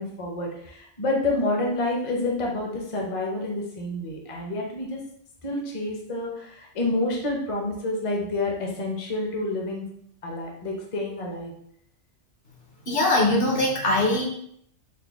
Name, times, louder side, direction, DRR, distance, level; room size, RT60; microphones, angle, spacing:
voice 1, 0.0-5.0 5.4-9.8 10.2-11.5, left 2 dB, 35° left, -1 dB, 0.6 m, -28 dB
voice 2, 12.9-14.3, left 1 dB, 55° left, -1 dB, 0.9 m, -21 dB
3.9 x 2.1 x 3.4 m, 0.69 s
omnidirectional pair, 1.2 m